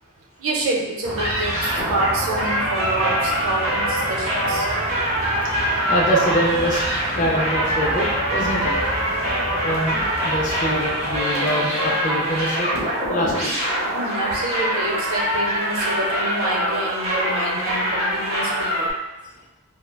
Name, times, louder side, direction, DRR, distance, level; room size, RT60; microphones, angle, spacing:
voice 1, 0.4-4.7 13.9-18.9, right 2 dB, 70° right, -2 dB, 0.6 m, -27 dB
sound 1, 1.0-11.2, right 1 dB, 15° left, 1.5 m, -32 dB
sound 2, 1.2-18.9, equal, 30° right, 0.6 m, -24 dB
voice 2, 5.9-6.8 7.1-8.7 9.1-9.2 9.6-12.7 13.0-13.7, equal, 35° left, -3 dB, 0.4 m, -24 dB
3.5 x 2.1 x 2.2 m, 0.96 s
head